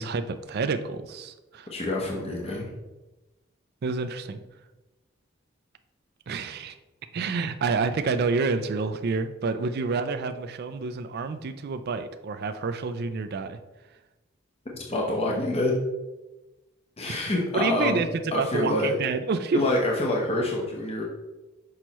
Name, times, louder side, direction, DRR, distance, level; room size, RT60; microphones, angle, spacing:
voice 1, 0.0-1.7 3.8-4.4 6.3-6.7 7.1-13.6 17.1-17.2 17.5-18.1 18.4-19.6, right 4 dB, 50° right, 9 dB, 0.4 m, -28 dB
voice 2, 1.7-2.7 14.9-15.7 17.0-18.0 18.3-18.9 19.5-21.0, left 2 dB, 30° left, -2 dB, 0.9 m, -26 dB
6.2 x 5.6 x 3.0 m, 1.1 s
head